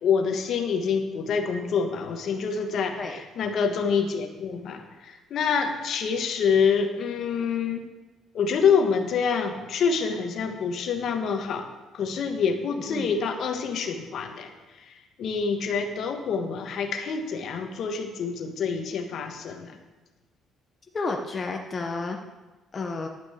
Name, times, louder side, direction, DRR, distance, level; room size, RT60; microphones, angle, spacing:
voice 1, 0.0-7.9 8.3-11.7 11.9-14.5 14.8-14.9 15.2-19.8, left 6 dB, 55° left, 6 dB, 1.3 m, -26 dB
voice 2, 20.9-22.2 22.7-23.1, left 3 dB, 30° left, 2 dB, 0.9 m, -31 dB
11.5 x 6.0 x 8.0 m, 1.2 s
cardioid pair, 125°, 0 cm